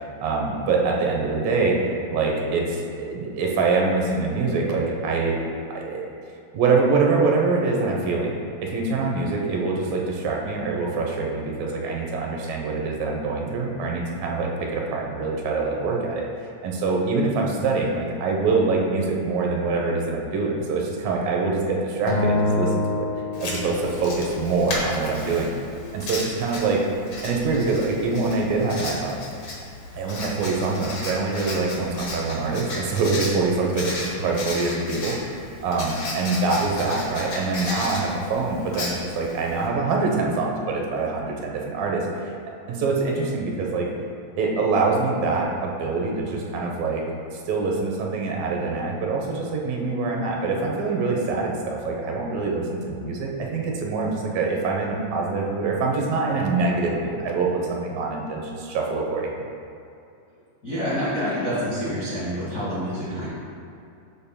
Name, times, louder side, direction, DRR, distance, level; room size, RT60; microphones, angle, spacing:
voice 1, 0.2-1.8 2.1-5.4 5.7-6.1 6.5-16.3 16.6-23.1 23.4-25.5 25.9-26.8 27.2-29.2 30.0-35.2 35.6-42.3 42.7-43.9 44.4-47.0 47.5-59.3, right 3 dB, 80° right, -1 dB, 2.6 m, -24 dB
Acoustic guitar, 22.1-24.5, left 2 dB, 80° left, 2.6 m, -26 dB
Writing, 23.3-39.7, left 2 dB, 55° left, 1.7 m, -35 dB
voice 2, 60.6-63.3, equal, 40° left, -11 dB, 1.4 m, -27 dB
12.0 x 7.2 x 2.2 m, 2.5 s
omnidirectional pair, 4.1 m